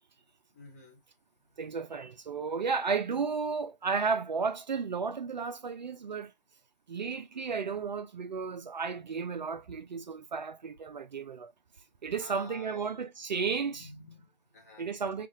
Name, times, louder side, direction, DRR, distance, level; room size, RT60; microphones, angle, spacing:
voice 1, 0.5-1.0 12.2-13.0 13.8-14.9, left 3 dB, 15° left, 0.6 m, -51 dB
voice 2, 1.6-6.3 6.9-11.5 12.0-13.9 14.8-15.3, right 5 dB, 50° right, 0.4 m, -33 dB
3.6 x 2.3 x 2.5 m
figure-of-eight pair, 150°, 29 cm